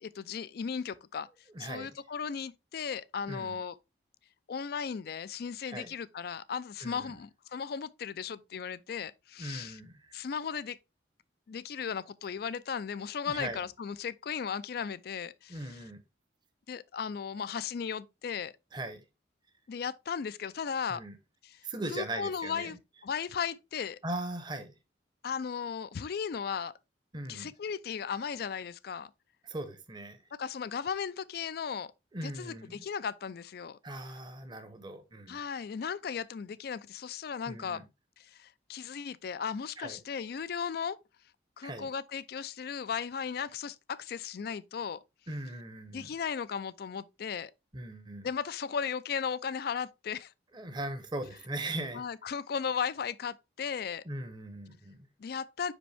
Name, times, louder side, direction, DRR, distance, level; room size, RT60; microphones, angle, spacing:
voice 1, 0.0-1.3 1.6-3.8 4.5-9.8 10.1-10.8 11.5-15.7 16.7-18.5 19.7-21.0 21.4-21.6 21.9-22.8 23.0-24.0 25.2-26.7 27.3-29.1 30.4-31.9 32.2-33.8 35.3-37.8 38.2-41.0 41.6-45.0 45.9-47.5 48.2-50.3 51.9-54.0 55.2-55.7, left 6 dB, 55° left, 0.4 m, -36 dB
voice 2, 1.5-2.0 3.3-3.6 5.6-5.9 6.8-7.2 9.4-10.2 13.3-13.6 15.5-16.0 18.7-19.0 20.9-21.2 21.6-22.7 24.0-24.7 27.1-27.5 29.4-30.2 32.1-32.8 33.8-35.4 37.5-37.8 39.8-40.0 41.6-41.9 45.3-46.1 47.7-48.3 50.5-52.0 54.0-55.1, right 1 dB, 25° right, 0.8 m, -39 dB
5.4 x 5.1 x 3.4 m
head